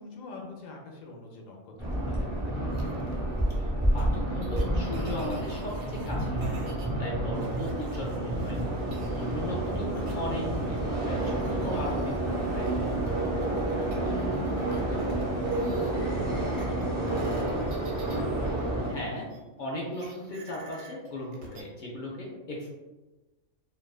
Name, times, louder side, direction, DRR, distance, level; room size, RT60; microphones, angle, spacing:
voice 1, 0.0-3.2 13.9-14.3 14.6-18.4, left 2 dB, 85° left, 0 dB, 1.0 m, -46 dB
sound 1, 1.8-18.9, right 1 dB, 5° right, 0.4 m, -29 dB
sound 2, 2.7-3.1 4.0-4.1 4.4-6.9 7.4-9.4 9.6-10.8 11.2-15.9 16.6-19.4 19.9-21.6, right 2 dB, 85° right, 1.0 m, -49 dB
voice 2, 3.6-8.9 9.1-10.8 11.0-13.0 18.9-19.2 19.6-22.7, left 1 dB, 65° left, -3 dB, 0.4 m, -37 dB
sound 3, 7.3-16.7, right 5 dB, 60° right, 0.6 m, -45 dB
2.4 x 2.2 x 2.3 m, 1.2 s
omnidirectional pair, 1.3 m